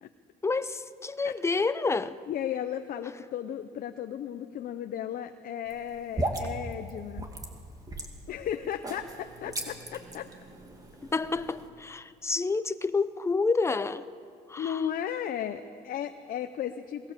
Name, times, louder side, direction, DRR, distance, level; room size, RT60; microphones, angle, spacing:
voice 1, 0.4-2.2 11.1-14.0 14.5-14.8, left 4 dB, 15° left, 0.8 m, -29 dB
voice 2, 1.2-1.6 2.3-7.3 8.3-10.3 14.6-17.1, left 9 dB, 60° left, 0.9 m, -35 dB
sound 1, 5.7-11.7, right 1 dB, 20° right, 2.6 m, -37 dB
23.0 x 18.5 x 7.5 m
cardioid pair, 110°, 17 cm